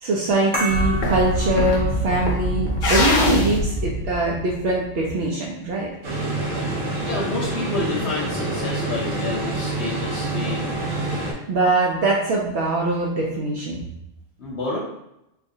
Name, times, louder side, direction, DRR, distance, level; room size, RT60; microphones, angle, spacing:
voice 1, 0.0-5.9 11.3-13.9, right 2 dB, 65° right, -4 dB, 0.7 m, -23 dB
sound 1, 0.5-5.6, right 1 dB, 10° right, 0.6 m, -34 dB
sound 2, 0.7-4.9, left 1 dB, 45° left, 0.7 m, -23 dB
sound 3, 6.0-11.3, right 2 dB, 85° right, 1.1 m, -27 dB
voice 2, 7.0-10.8 14.4-14.8, left 2 dB, 65° left, -5 dB, 0.9 m, -29 dB
4.2 x 2.4 x 2.6 m, 0.84 s
omnidirectional pair, 1.3 m